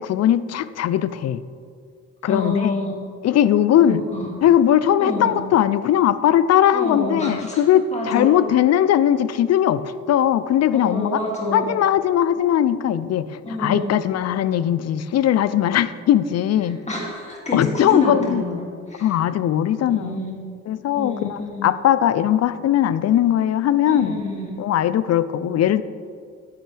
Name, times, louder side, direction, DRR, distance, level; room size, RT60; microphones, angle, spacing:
voice 1, 0.0-1.4 2.2-2.7 3.2-4.0 4.4-11.2 11.5-16.8 17.5-18.4 19.0-20.2 20.7-24.2 24.6-25.8, left 10 dB, 60° left, 15 dB, 0.5 m, -19 dB
voice 2, 2.2-2.9 3.8-4.3 5.0-5.3 6.7-7.6 7.9-8.3 10.7-11.7 13.5-13.9 16.6-18.6 18.9-19.1 19.8-20.4 21.0-21.7 23.9-24.7, left 1 dB, 20° left, -2 dB, 2.5 m, -28 dB
12.0 x 10.0 x 3.4 m, 2.2 s
cardioid pair, 90°, 30 cm